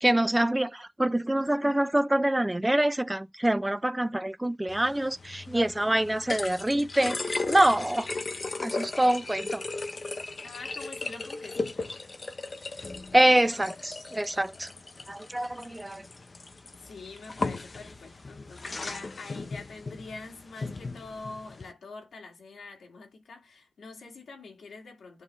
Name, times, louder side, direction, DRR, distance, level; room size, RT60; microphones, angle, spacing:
voice 1, 0.0-8.1 8.6-9.7 13.1-14.7 15.1-16.1, right 1 dB, 10° right, 0.5 m, -25 dB
sound 1, 4.7-21.7, left 3 dB, 35° left, 0.7 m, -37 dB
voice 2, 10.4-12.0 16.7-25.2, left 3 dB, 90° left, 2.0 m, -45 dB
9.4 x 3.5 x 4.2 m
wide cardioid pair, 170°, 0 cm